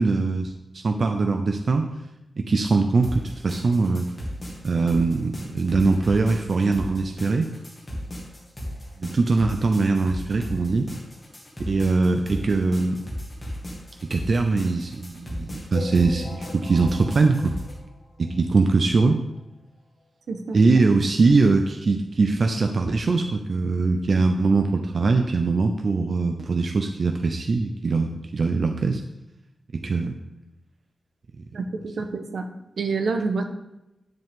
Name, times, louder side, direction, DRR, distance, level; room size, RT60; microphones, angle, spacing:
voice 1, 0.0-1.9 2.4-4.1 4.6-7.5 9.0-10.9 11.7-13.0 14.0-17.5 18.2-19.2 20.5-29.0 29.7-30.2, right 3 dB, 45° right, 5 dB, 0.6 m, -22 dB
sound 1, 3.0-17.7, equal, 20° left, 2.2 m, -35 dB
sound 2, 15.7-18.6 19.1-19.2 19.3-19.5 19.8-19.9 20.7-20.8 21.3-21.4, left 3 dB, 65° left, 2.0 m, -40 dB
voice 2, 20.3-20.6 31.5-32.5 32.8-33.4, right 4 dB, 75° right, 5 dB, 1.1 m, -27 dB
10.5 x 7.4 x 3.7 m, 0.92 s
wide cardioid pair, 175°, 0 cm